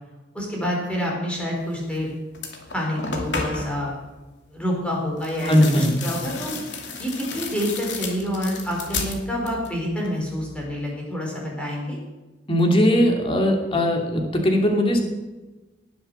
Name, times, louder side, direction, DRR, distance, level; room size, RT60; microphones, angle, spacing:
voice 1, 0.3-2.1 2.7-4.0 4.5-6.5 7.0-12.0, equal, 5° left, -3 dB, 4.7 m, -27 dB
sound 1, 1.9-2.0 2.3-3.8 5.2-9.8 10.1-10.7, left 4 dB, 80° left, 2.5 m, -33 dB
voice 2, 5.4-6.0 12.5-15.0, equal, 30° left, 2 dB, 2.6 m, -19 dB
18.5 x 7.9 x 6.9 m, 1.2 s
head